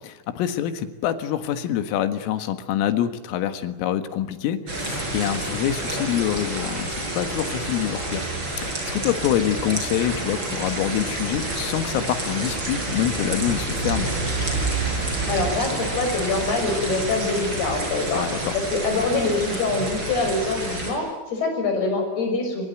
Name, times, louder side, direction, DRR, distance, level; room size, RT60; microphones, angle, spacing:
voice 1, 0.0-8.3 8.5-14.1 18.1-18.6, left 11 dB, 80° left, 9 dB, 4.1 m, -26 dB
sound 1, 4.7-20.9, right 2 dB, 20° right, 6.7 m, -28 dB
voice 2, 15.3-22.7, left 3 dB, 50° left, 4 dB, 8.0 m, -25 dB
26.0 x 23.5 x 9.2 m, 1.2 s
omnidirectional pair, 5.9 m